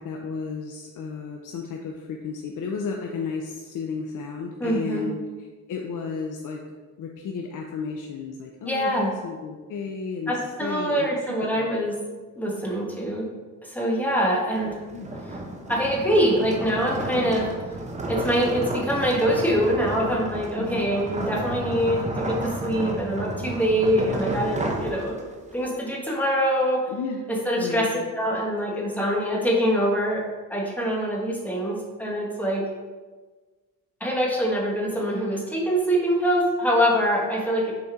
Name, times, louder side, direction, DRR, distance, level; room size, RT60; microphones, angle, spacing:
voice 1, 0.0-5.2 5.7-6.6 7.0-11.1 11.5-11.7 14.9-15.2 20.6-20.9 26.9-27.2 27.6-28.0, left 5 dB, 65° left, 1 dB, 0.6 m, -33 dB
voice 2, 4.6-5.1 8.7-9.1 10.3-11.9 12.4-13.3 13.6-14.8 15.2-15.4 15.7-17.5 18.1-25.1 25.5-26.8 27.4-27.9 28.1-30.2 30.5-32.6 34.0-37.7, equal, 5° left, -3 dB, 1.3 m, -24 dB
sound 1, 14.6-25.5, right 1 dB, 20° right, 0.8 m, -32 dB
6.6 x 4.2 x 3.6 m, 1.3 s
cardioid pair, 120°, 33 cm